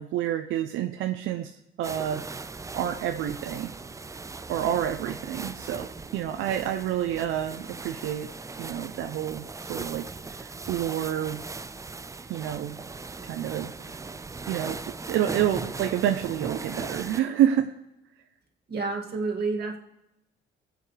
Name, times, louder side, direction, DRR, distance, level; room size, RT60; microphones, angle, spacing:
voice 1, 0.0-2.2 2.7-3.7 4.5-8.3 8.6-11.4 12.3-12.8 13.2-13.7 14.5-17.7, right 11 dB, 85° right, 6 dB, 0.6 m, -28 dB
sound 1, 1.8-17.2, right 3 dB, 15° right, 0.4 m, -39 dB
voice 2, 18.7-19.8, right 3 dB, 55° right, 1 dB, 2.3 m, -29 dB
23.0 x 8.1 x 3.4 m, 0.88 s
cardioid pair, 90°, 20 cm